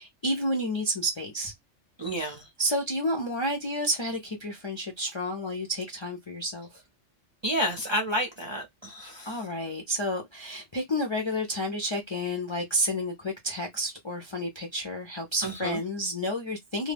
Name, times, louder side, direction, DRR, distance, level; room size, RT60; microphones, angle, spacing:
voice 1, 0.0-1.5 2.2-6.8 9.3-16.9, equal, 45° left, 0.4 m, -30 dB
voice 2, 2.0-2.5 7.4-9.4 15.4-15.8, equal, 35° right, 0.4 m, -30 dB
2.2 x 2.1 x 3.2 m
omnidirectional pair, 1.2 m